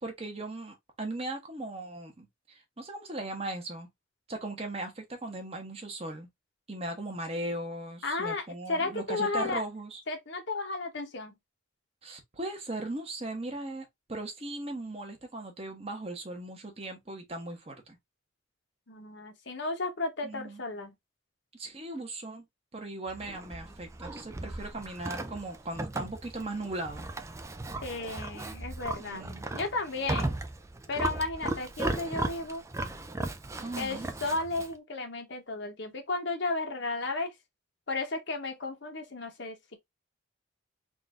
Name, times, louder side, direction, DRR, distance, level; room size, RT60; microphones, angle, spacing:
voice 1, 0.0-3.9 4.3-6.3 6.7-10.0 12.0-18.0 20.2-20.6 21.5-22.4 22.7-27.1 29.0-29.5 33.6-34.1, right 2 dB, 30° right, 1.1 m, -38 dB
voice 2, 8.0-9.6 10.1-11.3 18.9-20.9 27.8-29.2 29.5-30.4 30.9-32.6 33.8-37.3 37.9-39.8, left 3 dB, 55° left, 1.0 m, -34 dB
Livestock farm animals working animals, 23.1-34.7, right 2 dB, 15° right, 0.3 m, -36 dB
3.9 x 2.6 x 3.6 m
head